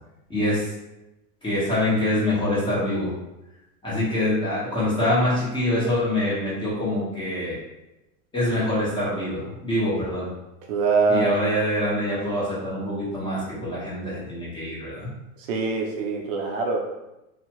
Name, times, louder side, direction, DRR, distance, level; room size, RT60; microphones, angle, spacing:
voice 1, 0.3-0.7 1.4-3.1 3.8-7.6 8.3-10.3 11.1-15.1, left 1 dB, 10° left, -9 dB, 1.3 m, -25 dB
voice 2, 10.7-11.3 15.5-16.8, right 4 dB, 65° right, 1 dB, 0.7 m, -23 dB
2.7 x 2.4 x 2.9 m, 0.95 s
supercardioid pair, 130°, 41 cm